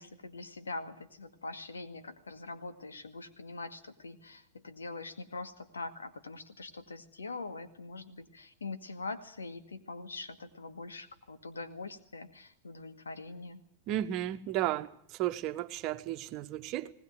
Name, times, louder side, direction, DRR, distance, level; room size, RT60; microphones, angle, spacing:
voice 1, 0.0-13.6, left 3 dB, 75° left, 8 dB, 2.0 m, -43 dB
voice 2, 13.9-16.9, right 13 dB, 40° right, 10 dB, 1.2 m, -34 dB
20.0 x 19.0 x 9.4 m, 0.65 s
figure-of-eight pair, 90°, 0 cm